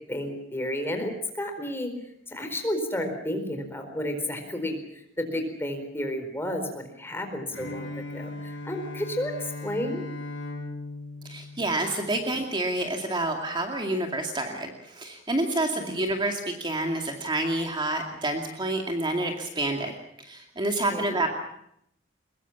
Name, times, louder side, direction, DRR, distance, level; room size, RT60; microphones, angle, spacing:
voice 1, 0.1-1.9 2.3-10.0 15.6-16.0 20.9-21.2, left 1 dB, 15° left, 5 dB, 4.4 m, -32 dB
Bowed string instrument, 7.5-12.4, left 2 dB, 80° left, 6.0 m, -38 dB
voice 2, 11.2-19.9 20.2-21.3, right 2 dB, 25° right, 3 dB, 2.3 m, -28 dB
23.5 x 21.5 x 7.2 m, 0.73 s
head